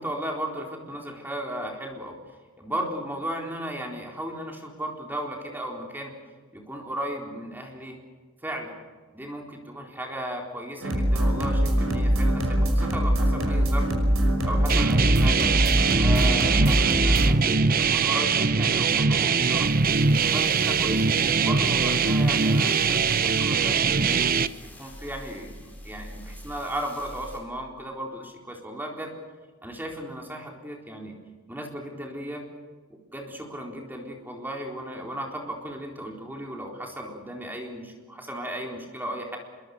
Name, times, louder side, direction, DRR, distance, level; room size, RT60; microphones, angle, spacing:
voice 1, 0.0-2.2 2.6-6.1 6.5-8.0 8.4-8.7 9.1-13.9 14.4-15.5 16.0-19.7 20.2-21.0 21.4-29.1 29.6-31.2 31.5-32.4 32.9-39.4, right 1 dB, 10° right, 1 dB, 4.0 m, -35 dB
sound 1, 10.8-17.3, equal, 75° right, 5.9 m, -23 dB
sound 2, 14.7-24.5, right 5 dB, 45° right, 0.8 m, -22 dB
sound 3, 19.0-27.4, equal, 10° left, 5.7 m, -44 dB
26.5 x 23.0 x 6.7 m, 1.5 s
head